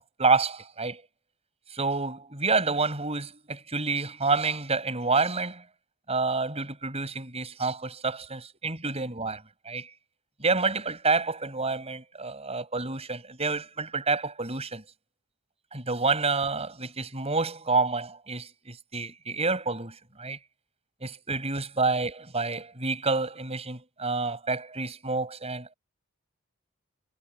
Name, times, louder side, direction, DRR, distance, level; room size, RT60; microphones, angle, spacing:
voice 1, 0.2-1.0 1.7-5.6 6.1-9.9 10.4-14.8 15.7-20.4 21.0-25.7, right 3 dB, 30° right, 8.0 m, -28 dB
head